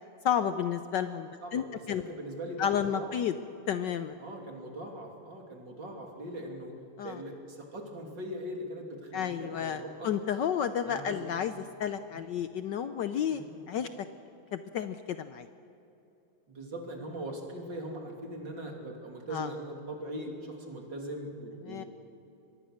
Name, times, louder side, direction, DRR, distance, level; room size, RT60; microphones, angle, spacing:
voice 1, 0.2-2.0 2.6-3.4 3.7-4.2 7.0-7.2 9.1-11.5 11.8-13.4 13.7-13.9 14.5-15.5 19.3-19.5 21.6-21.8, left 8 dB, 65° left, 10 dB, 1.2 m, -31 dB
voice 2, 1.4-3.2 4.2-6.7 7.0-10.1 10.8-11.6 12.1-12.2 13.3-13.6 16.5-21.9, right 1 dB, 55° right, 1 dB, 3.6 m, -41 dB
25.0 x 21.0 x 6.6 m, 2.9 s
omnidirectional pair, 2.4 m